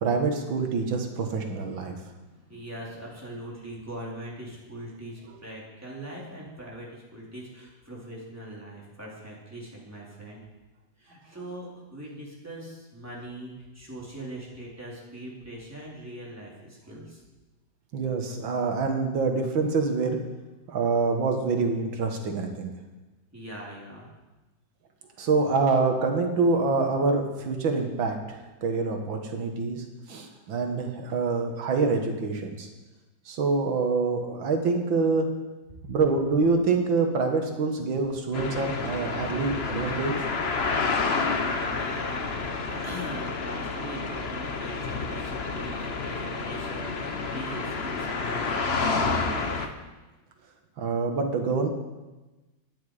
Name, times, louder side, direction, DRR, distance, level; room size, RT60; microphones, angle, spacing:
voice 1, 0.0-2.0 17.9-20.2 20.7-22.7 25.2-32.7 33.3-35.3 35.8-40.3 50.8-51.7, right 4 dB, 85° right, 4 dB, 2.2 m, -26 dB
voice 2, 2.2-10.4 11.0-17.2 23.3-24.1 40.6-41.0 41.4-48.5 48.7-49.6, right 1 dB, 10° right, -5 dB, 3.8 m, -41 dB
sound 1, 38.3-49.7, left 4 dB, 40° left, 1.1 m, -29 dB
20.5 x 9.7 x 5.0 m, 1.2 s
omnidirectional pair, 2.1 m